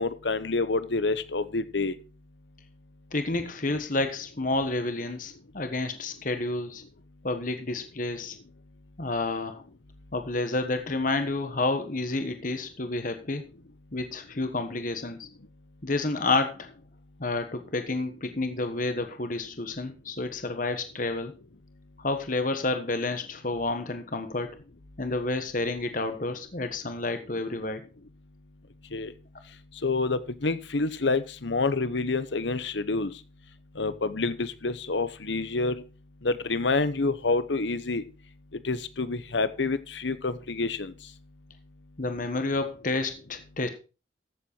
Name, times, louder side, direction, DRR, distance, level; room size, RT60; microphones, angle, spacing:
voice 1, 0.0-1.9 28.9-29.1 29.8-33.1 33.8-35.8 36.2-38.0 38.6-40.9, left 3 dB, 70° left, 14 dB, 0.9 m, -28 dB
voice 2, 3.1-6.8 7.2-8.4 9.0-9.6 10.1-13.5 13.9-15.3 15.8-16.7 17.2-21.3 22.0-24.5 25.0-27.8 42.0-43.7, left 2 dB, 45° left, 8 dB, 1.3 m, -30 dB
14.5 x 7.7 x 4.5 m, 0.32 s
head